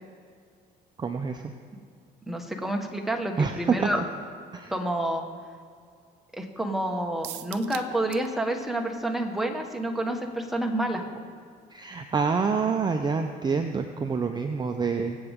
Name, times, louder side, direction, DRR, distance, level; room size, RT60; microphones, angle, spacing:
voice 1, 1.0-1.4 3.4-3.9 4.5-4.7 11.7-15.2, right 5 dB, 25° right, 5 dB, 0.7 m, -27 dB
voice 2, 2.3-4.0 4.7-5.2 6.3-11.0, right 1 dB, ahead, 2 dB, 1.5 m, -29 dB
sound 1, 7.2-8.3 8.6-8.7 9.1-9.2, right 14 dB, 90° right, 0.6 m, -40 dB
24.0 x 7.9 x 3.7 m, 2.1 s
cardioid pair, 110°, 17 cm